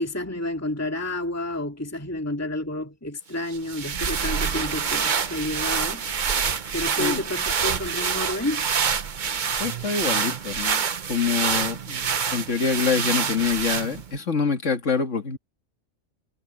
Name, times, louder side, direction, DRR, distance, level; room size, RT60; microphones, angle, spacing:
voice 1, 0.0-6.0 6.7-8.7, left 1 dB, 10° left, 2.2 m, -30 dB
sound 1, 3.5-14.2, right 6 dB, 40° right, 0.8 m, -26 dB
voice 2, 9.6-12.0 12.3-15.4, left 6 dB, 65° left, 2.3 m, -25 dB
omnidirectional pair, 1.4 m